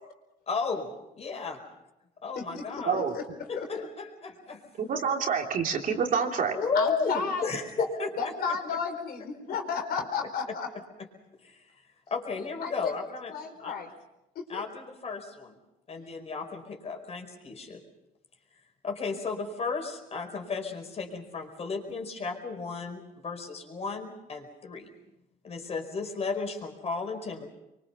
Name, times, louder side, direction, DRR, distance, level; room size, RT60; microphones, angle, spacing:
voice 1, 0.5-0.9 1.2-1.6 2.2-3.0 3.5-4.6 6.5-8.6 11.4-13.3 13.6-13.8 14.5-15.6 15.9-17.8 18.8-24.9 25.4-27.5, left 4 dB, 40° left, 4 dB, 5.0 m, -34 dB
voice 2, 2.3-3.2 3.6-3.9 6.7-7.5 8.2-10.7 12.6-12.9 13.3-13.9 14.3-14.6, left 5 dB, 65° left, 4 dB, 4.5 m, -33 dB
voice 3, 4.8-6.5, right 6 dB, 55° right, 2 dB, 3.2 m, -27 dB
25.5 x 24.0 x 5.6 m, 0.91 s
cardioid pair, 110°, 17 cm